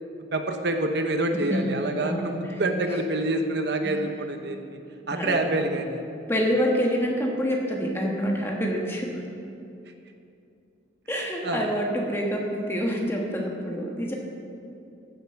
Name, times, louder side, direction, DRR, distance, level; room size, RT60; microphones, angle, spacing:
voice 1, 0.3-4.8 5.1-6.0 11.1-11.7, right 2 dB, 60° right, 5 dB, 0.8 m, -27 dB
voice 2, 2.0-2.8 3.8-4.0 5.1-5.6 6.3-9.1 11.1-14.1, equal, 10° left, -1 dB, 1.4 m, -27 dB
14.5 x 7.9 x 5.8 m, 2.7 s
head